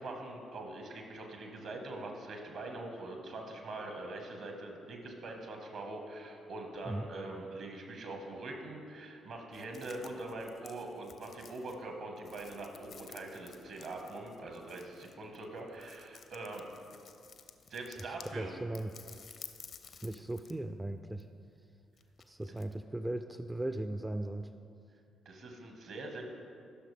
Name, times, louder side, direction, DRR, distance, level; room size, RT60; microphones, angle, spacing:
voice 1, 0.0-16.6 17.7-18.5 25.3-26.2, right 2 dB, 65° right, 2 dB, 1.6 m, -43 dB
sound 1, 9.5-18.4 18.7-20.6 20.9-22.8, left 6 dB, 55° left, 0.6 m, -54 dB
voice 2, 18.0-18.9 20.0-21.3 22.3-24.5, right 1 dB, 15° right, 8 dB, 0.4 m, -38 dB
13.5 x 6.3 x 3.4 m, 2.4 s
hypercardioid pair, 45°, 0 cm